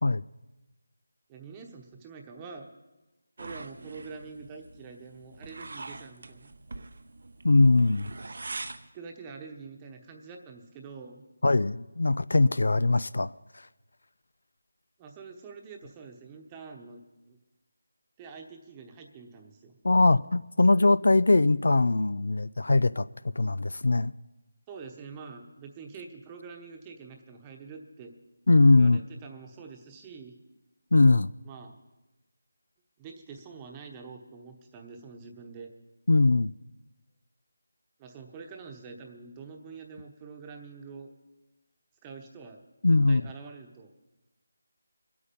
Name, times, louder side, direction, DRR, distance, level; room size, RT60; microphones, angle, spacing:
voice 1, 1.3-2.7 3.4-6.5 8.9-11.2 15.0-17.0 17.3-17.4 18.2-19.8 24.7-28.1 28.7-30.4 31.4-31.8 33.0-35.7 38.0-41.1 42.0-43.9, right 5 dB, 15° right, 1.0 m, -45 dB
sound 1, 3.4-8.9, right 3 dB, 60° right, 0.8 m, -43 dB
voice 2, 7.4-8.1 11.4-13.3 19.8-23.1 23.4-24.1 28.5-29.0 30.9-31.3 36.1-36.5 42.8-43.2, left 2 dB, 70° left, 0.4 m, -21 dB
23.5 x 8.6 x 5.3 m
figure-of-eight pair, 170°, 0 cm